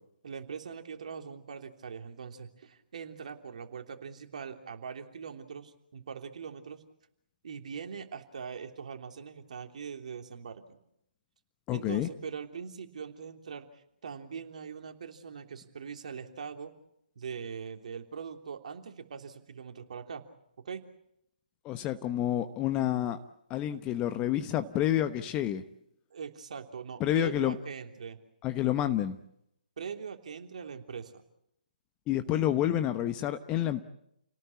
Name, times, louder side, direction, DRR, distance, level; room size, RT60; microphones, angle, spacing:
voice 1, 0.2-6.8 7.4-10.8 11.7-13.7 14.0-16.7 17.1-20.2 20.6-20.8 26.1-28.2 29.8-31.1, right 6 dB, 50° right, 4 dB, 3.2 m, -42 dB
voice 2, 11.7-12.1 21.6-23.2 23.5-25.6 27.0-27.5 28.4-29.2 32.1-33.8, left 12 dB, 20° left, 9 dB, 1.1 m, -29 dB
29.5 x 18.5 x 8.5 m, 0.80 s
figure-of-eight pair, 140°, 5 cm